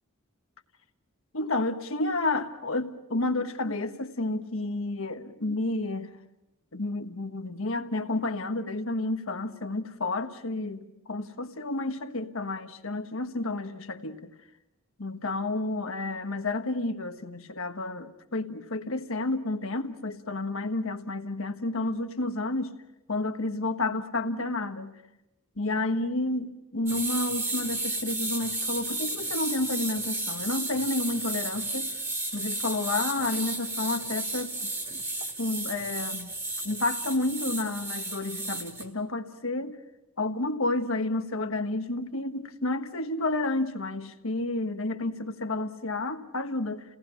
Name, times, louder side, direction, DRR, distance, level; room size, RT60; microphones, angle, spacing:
voice 1, 1.3-6.2 6.7-14.3 15.0-22.8 23.1-25.0 25.6-31.9 32.3-35.0 35.4-36.4 36.6-39.8 40.2-46.8, left 2 dB, 70° left, 7 dB, 1.4 m, -30 dB
sound 1, 26.9-38.8, right 2 dB, 15° right, 2.1 m, -33 dB
30.0 x 18.5 x 5.7 m, 0.93 s
head